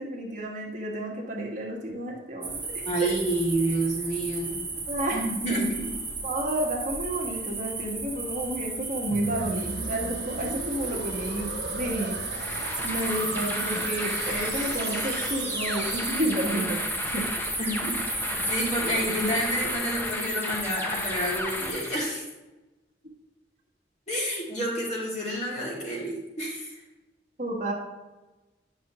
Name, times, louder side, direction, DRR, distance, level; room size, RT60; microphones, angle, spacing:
voice 1, 0.0-2.6 3.0-3.1 4.9-5.6 6.2-12.2 12.8-16.8 17.1-17.3 27.4-27.7, right 1 dB, 45° right, -1 dB, 1.3 m, -31 dB
sound 1, 2.4-19.8, right 3 dB, 10° right, 1.3 m, -35 dB
voice 2, 2.8-4.6 5.1-5.9 17.6-22.2 24.1-26.8, right 1 dB, 40° left, -4 dB, 2.1 m, -29 dB
sound 2, 9.1-17.0, right 3 dB, 70° right, 0.8 m, -37 dB
sound 3, 12.2-22.1, left 1 dB, 10° left, 0.6 m, -33 dB
9.4 x 5.7 x 2.9 m, 1.1 s
head